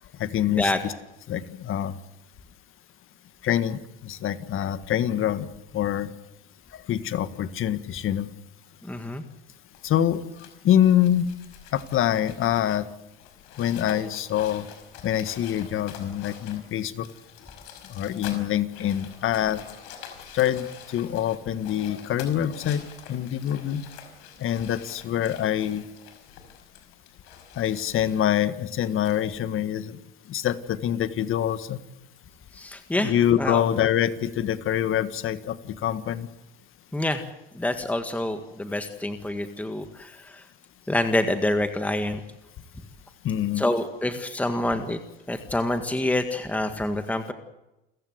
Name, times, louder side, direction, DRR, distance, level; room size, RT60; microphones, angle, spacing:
voice 1, 0.2-0.9 1.3-2.0 3.4-5.5 5.7-6.1 6.9-8.3 9.8-10.2 10.6-11.3 11.7-12.8 13.6-14.7 15.0-17.1 17.9-19.6 20.3-22.8 23.1-23.8 24.4-25.8 27.6-29.9 30.3-31.8 32.9-36.3 43.2-43.6, left 10 dB, 45° left, 13 dB, 1.7 m, -25 dB
voice 2, 8.9-9.2 32.5-33.1 33.4-33.6 36.9-37.2 37.5-40.3 40.9-42.2 43.6-45.0 45.3-47.3, left 1 dB, 5° left, 7 dB, 1.8 m, -27 dB
sound 1, 9.7-29.2, left 8 dB, 70° left, 5.4 m, -46 dB
29.0 x 15.5 x 8.0 m, 0.94 s
supercardioid pair, 100°, 30 cm